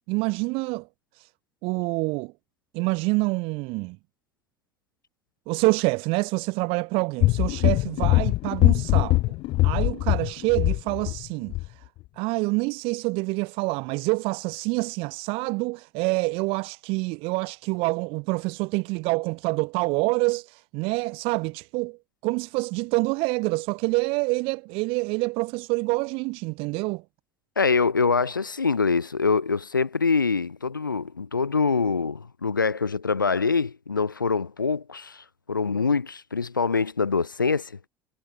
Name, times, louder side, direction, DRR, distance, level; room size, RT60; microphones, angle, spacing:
voice 1, 0.1-0.9 1.2-1.3 1.6-2.3 2.7-4.0 5.5-9.2 9.6-11.8 12.2-22.0 22.2-27.0, right 27 dB, 65° right, 5.4 m, -26 dB
sound 1, 7.2-11.2 11.5-11.7, left 19 dB, 60° left, 1.3 m, -22 dB
voice 2, 27.6-37.7, left 4 dB, 90° left, 1.4 m, -24 dB
figure-of-eight pair, 60°, 10 cm